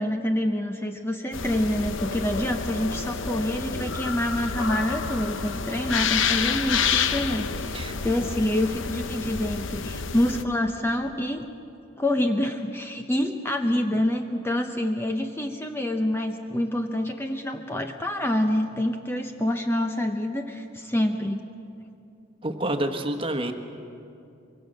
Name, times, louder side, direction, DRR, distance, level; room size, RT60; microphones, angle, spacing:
voice 1, 0.0-11.5 12.0-21.4, left 1 dB, 10° left, 5 dB, 0.8 m, -27 dB
sound 1, 1.3-10.4, left 6 dB, 70° left, 0.9 m, -29 dB
voice 2, 22.4-23.5, right 1 dB, 25° right, 6 dB, 1.3 m, -28 dB
24.0 x 23.0 x 6.5 m, 2.6 s
head